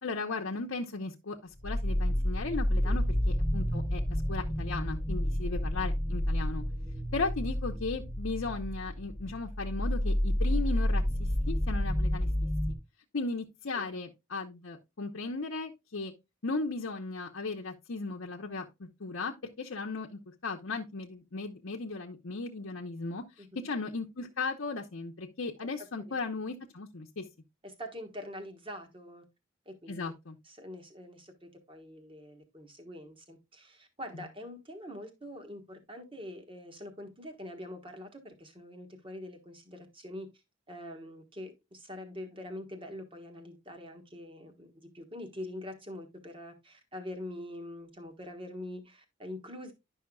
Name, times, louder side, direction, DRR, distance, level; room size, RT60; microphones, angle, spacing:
voice 1, 0.0-6.6 7.1-12.3 13.1-16.1 16.4-27.2 29.9-30.3, left 3 dB, 75° left, 0.8 m, -36 dB
sound 1, 1.6-12.7, equal, 5° left, 0.8 m, -30 dB
voice 2, 27.6-29.2 29.6-30.1 30.4-40.3 40.7-49.7, left 1 dB, 25° right, 1.3 m, -44 dB
11.0 x 5.6 x 2.3 m
head